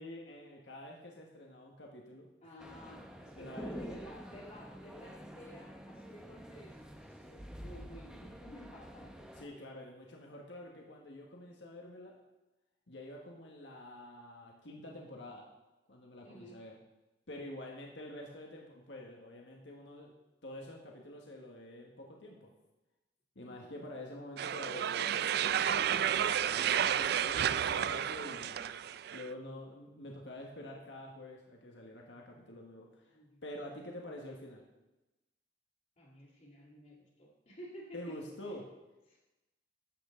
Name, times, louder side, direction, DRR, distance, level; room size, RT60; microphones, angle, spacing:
voice 1, 0.0-2.5 3.3-3.9 9.3-12.2 12.9-15.5 15.9-16.8 17.3-20.1 20.4-22.5 23.3-28.6 29.1-34.6 37.9-38.7, left 1 dB, 75° left, 0 dB, 1.5 m, -47 dB
voice 2, 2.4-9.7 10.1-10.2 16.2-16.6 23.4-23.7 33.1-33.4 36.0-38.1 38.4-38.6 39.1-39.2, equal, 40° left, -7 dB, 2.3 m, -53 dB
sound 1, 2.6-9.5, equal, 5° right, 0.8 m, -48 dB
sound 2, 24.4-29.3, right 9 dB, 60° right, 0.3 m, -31 dB
13.5 x 8.0 x 3.8 m, 1.0 s
head